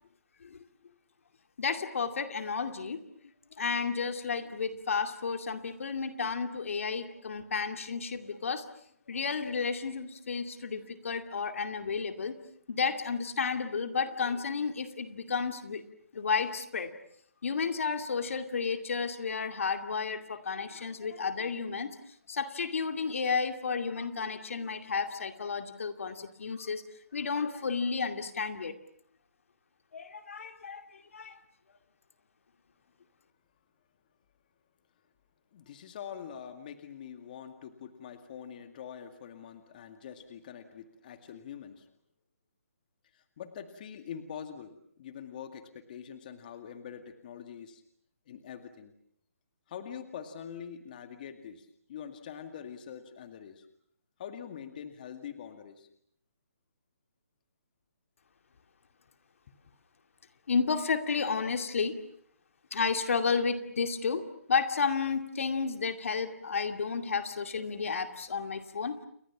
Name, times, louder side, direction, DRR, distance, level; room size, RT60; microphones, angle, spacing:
voice 1, 1.6-3.0 3.6-8.7 9.1-12.4 12.7-15.8 16.1-16.9 17.4-22.0 22.3-26.8 27.1-28.8 29.9-31.4 60.5-62.0 62.7-69.0, left 5 dB, 60° left, 8 dB, 2.4 m, -32 dB
voice 2, 35.5-41.9 43.1-47.8 48.3-48.9 49.7-53.7 54.2-55.9, left 8 dB, 35° left, 8 dB, 2.1 m, -44 dB
29.5 x 23.0 x 7.3 m, 0.66 s
hypercardioid pair, 165°, 8 cm